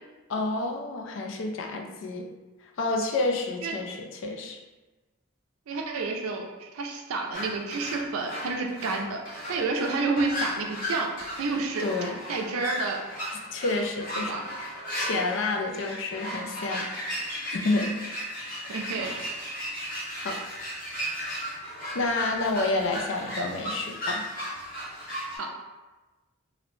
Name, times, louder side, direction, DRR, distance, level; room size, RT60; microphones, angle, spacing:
voice 1, 0.3-2.3 2.8-4.6 11.8-12.2 13.5-16.9 17.4-18.0 18.6-18.9 19.7-19.9 20.1-20.4 21.9-24.3, left 2 dB, 60° left, 2 dB, 0.3 m, -29 dB
voice 2, 5.7-11.8 12.3-13.0 14.2-14.5 18.7-19.2 25.3-25.5, right 3 dB, 85° right, 2 dB, 0.4 m, -30 dB
sound 1, 7.3-25.4, equal, 40° left, 0.8 m, -35 dB
2.6 x 2.0 x 3.0 m, 1.2 s
head